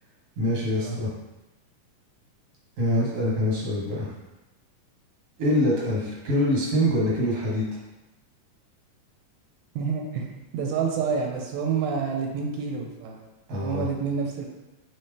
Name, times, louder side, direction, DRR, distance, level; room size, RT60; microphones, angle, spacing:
voice 1, 0.4-1.1 2.8-4.1 5.4-7.6 13.5-13.9, equal, 45° right, -6 dB, 1.5 m, -24 dB
voice 2, 9.8-10.3 10.5-13.3 13.6-14.5, right 6 dB, 85° right, 1 dB, 2.0 m, -28 dB
4.2 x 3.7 x 3.3 m, 1.0 s
omnidirectional pair, 3.4 m